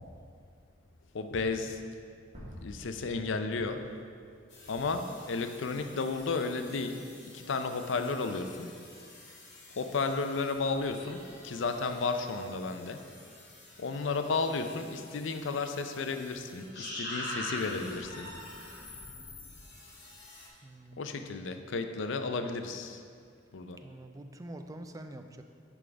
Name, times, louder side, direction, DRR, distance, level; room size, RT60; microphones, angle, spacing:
voice 1, 1.1-1.8 2.6-3.8 4.6-7.1 7.3-8.7 9.8-13.0 13.8-18.3 21.0-23.0 23.5-23.8, left 4 dB, 80° left, 7 dB, 0.5 m, -33 dB
sound 1, 2.3-5.3, equal, 35° right, 1.5 m, -50 dB
sound 2, 4.5-20.5, left 1 dB, 60° left, 2.0 m, -46 dB
voice 2, 20.6-21.3 23.8-25.4, right 1 dB, 20° right, 7 dB, 0.3 m, -46 dB
10.0 x 3.6 x 5.1 m, 2.2 s
head